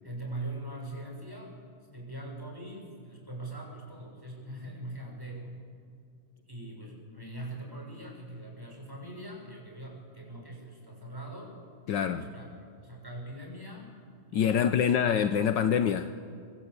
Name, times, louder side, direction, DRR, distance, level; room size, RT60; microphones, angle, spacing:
voice 1, 0.0-1.5 1.8-5.6 6.3-11.5 12.0-13.9 14.3-14.9, right 1 dB, 10° right, -1 dB, 6.9 m, -42 dB
voice 2, 11.9-12.3 14.3-16.1, left 8 dB, 70° left, 10 dB, 1.5 m, -25 dB
26.0 x 24.0 x 8.4 m, 2.4 s
omnidirectional pair, 2.1 m